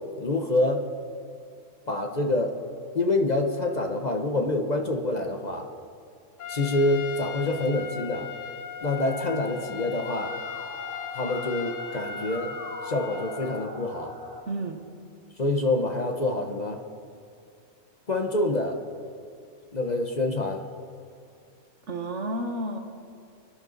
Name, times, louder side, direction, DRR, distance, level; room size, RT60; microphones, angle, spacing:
voice 1, 0.2-0.8 1.9-2.5 2.9-5.7 6.5-8.3 8.8-10.3 11.1-12.5 12.8-14.1 15.4-16.8 18.1-18.8 19.7-20.6, left 2 dB, 35° left, 4 dB, 1.0 m, -26 dB
Trumpet, 6.4-13.7, left 8 dB, 85° left, 1.1 m, -38 dB
Musical instrument, 8.8-14.4, equal, 40° right, 3.4 m, -41 dB
voice 2, 14.5-14.8 21.9-22.8, right 1 dB, 70° right, 4 dB, 1.7 m, -31 dB
24.5 x 10.5 x 4.0 m, 2.4 s
omnidirectional pair, 1.3 m